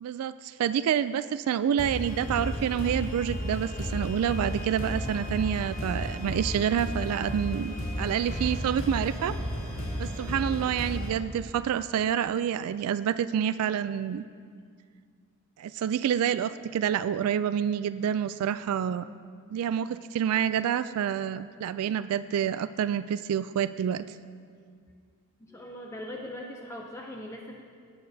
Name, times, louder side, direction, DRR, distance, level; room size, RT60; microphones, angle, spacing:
voice 1, 0.0-9.4 10.0-14.2 15.6-19.0 19.5-24.1, right 9 dB, 90° right, 15 dB, 0.3 m, -28 dB
sound 1, 1.8-11.1, equal, 70° left, 2.0 m, -33 dB
voice 2, 25.4-27.6, left 1 dB, 15° left, 0 dB, 0.5 m, -41 dB
18.0 x 8.4 x 2.7 m, 2.1 s
head